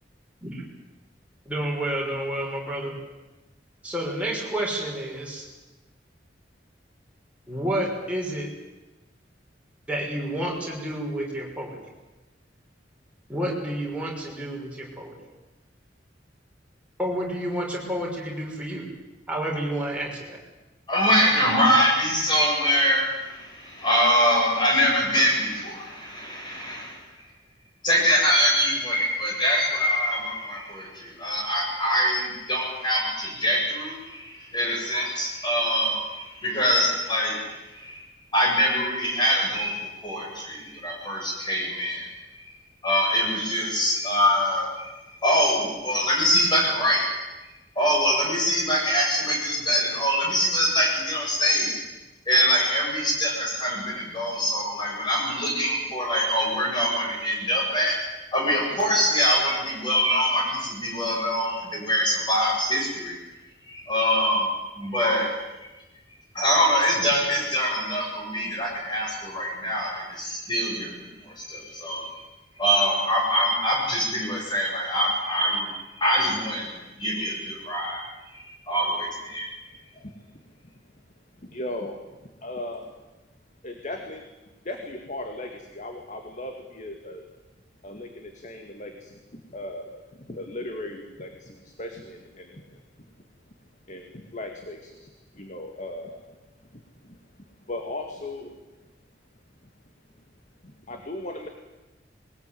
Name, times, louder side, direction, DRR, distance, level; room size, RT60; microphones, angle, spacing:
voice 1, 1.5-2.9 3.8-5.4 7.5-8.5 9.9-11.8 13.3-15.2 17.0-18.9 19.3-20.4, right 1 dB, 5° right, -3 dB, 5.9 m, -30 dB
voice 2, 20.9-27.0 27.8-37.4 37.7-38.0 38.3-42.1 42.8-44.9 45.2-47.1 47.8-51.7 52.3-58.0 58.3-63.2 63.7-64.5 64.8-65.3 66.3-72.1 72.6-75.7 76.0-78.0 78.7-79.5, equal, 25° left, -1 dB, 7.6 m, -24 dB
voice 3, 81.5-82.0 82.4-82.8 83.6-84.2 84.7-87.2 87.8-92.8 93.9-96.2 97.0-97.2 97.7-98.5 100.6-101.5, left 1 dB, 40° left, 4 dB, 2.1 m, -37 dB
21.5 x 19.5 x 9.4 m, 1.1 s
head